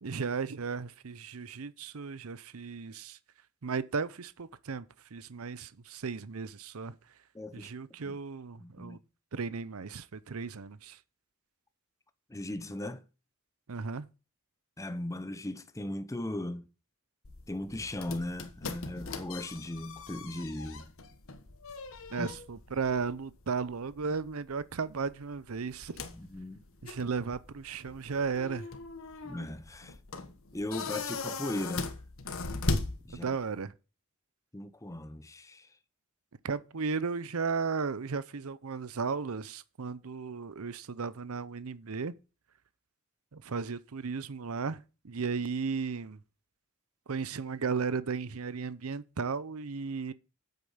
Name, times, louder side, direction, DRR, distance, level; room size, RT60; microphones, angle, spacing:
voice 1, 0.0-3.2 3.6-4.9 5.1-6.9 7.5-9.0 9.3-11.0 13.7-14.1 22.1-26.0 26.8-28.7 33.1-33.7 36.4-42.1 43.3-46.2 47.1-50.1, right 5 dB, 75° right, 0.7 m, -35 dB
voice 2, 7.3-7.7 8.0-8.2 8.6-9.0 12.3-13.0 14.8-16.6 17.5-20.9 22.2-22.3 26.1-26.6 29.2-30.0 30.5-31.9 33.0-33.2 34.5-35.8, left 1 dB, 15° left, 0.7 m, -38 dB
sound 1, 17.2-33.6, left 3 dB, 65° left, 1.3 m, -39 dB
8.4 x 8.1 x 5.7 m
head